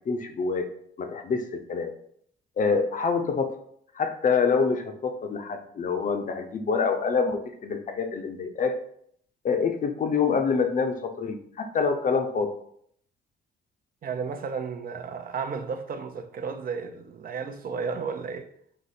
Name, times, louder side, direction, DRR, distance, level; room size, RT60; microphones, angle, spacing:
voice 1, 0.1-0.7 1.0-1.9 2.6-3.6 4.0-8.7 9.4-12.6, left 5 dB, 40° left, 0.6 m, -26 dB
voice 2, 14.0-18.5, right 5 dB, 45° right, 0.5 m, -33 dB
5.0 x 2.0 x 4.1 m
cardioid pair, 90°, 20 cm